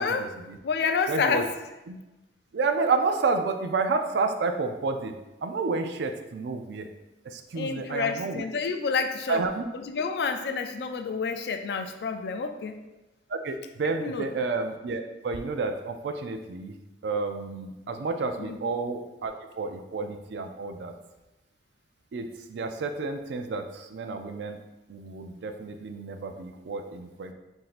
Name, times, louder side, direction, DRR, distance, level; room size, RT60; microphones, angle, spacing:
voice 1, 0.0-0.6 1.1-1.4 1.9-2.0 2.5-5.1 5.4-6.9 7.2-8.5 9.3-9.6 13.3-16.7 17.0-20.9 22.1-24.6 24.9-27.3, right 4 dB, 70° right, 6 dB, 0.4 m, -30 dB
voice 2, 0.6-1.5 7.5-9.4 9.9-12.8 14.0-14.3 18.4-18.6, left 5 dB, 60° left, 7 dB, 0.3 m, -29 dB
5.8 x 2.6 x 2.5 m, 1.0 s
head